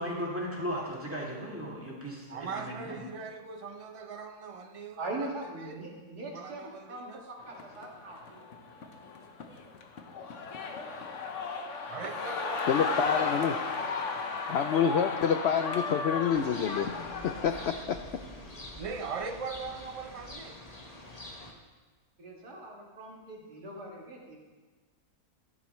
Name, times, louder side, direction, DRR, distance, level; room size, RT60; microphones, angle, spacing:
voice 1, 0.0-3.0, equal, 10° right, 2.3 m, -36 dB
voice 2, 2.3-5.3 5.6-5.8 6.3-7.2 11.9-13.4 18.8-20.6, right 5 dB, 65° right, 0.3 m, -40 dB
voice 3, 5.0-8.5 22.2-24.4, right 2 dB, 80° right, 2.7 m, -41 dB
sound 1, 7.5-17.7, left 4 dB, 55° left, 1.2 m, -34 dB
voice 4, 12.7-13.5 14.5-18.1, left 7 dB, 85° left, 0.5 m, -28 dB
sound 2, 16.3-21.5, left 1 dB, 25° left, 1.2 m, -45 dB
13.5 x 11.5 x 3.1 m
omnidirectional pair, 1.7 m